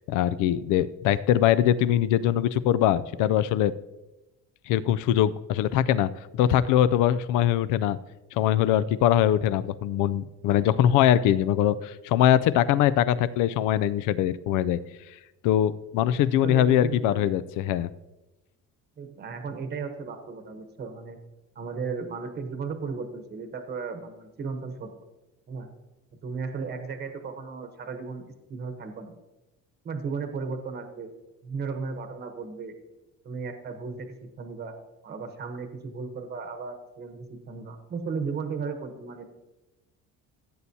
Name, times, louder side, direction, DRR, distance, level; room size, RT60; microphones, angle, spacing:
voice 1, 0.1-3.7 4.7-8.0 8.3-14.8 15.4-17.9, left 11 dB, 75° left, 17 dB, 0.5 m, -22 dB
voice 2, 16.4-17.3 19.0-21.2 21.5-24.9 25.5-25.7 26.2-29.1 29.8-31.1 31.4-32.7 33.2-34.1 34.4-34.7 35.0-39.2, right 5 dB, 30° right, 6 dB, 1.0 m, -35 dB
15.5 x 8.5 x 2.8 m, 1.0 s
cardioid pair, 155°, 31 cm